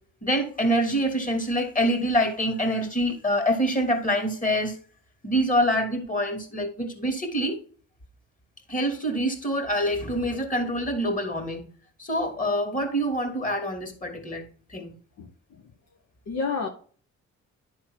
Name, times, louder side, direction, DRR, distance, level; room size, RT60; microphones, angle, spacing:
voice 1, 0.2-4.8 5.2-7.6 8.7-11.7 12.0-14.4 14.7-14.9, equal, 25° left, 2.5 m, -25 dB
voice 2, 15.2-15.7 16.3-16.7, left 5 dB, 60° left, 1.2 m, -31 dB
11.0 x 3.8 x 4.5 m
cardioid pair, 90°, 30 cm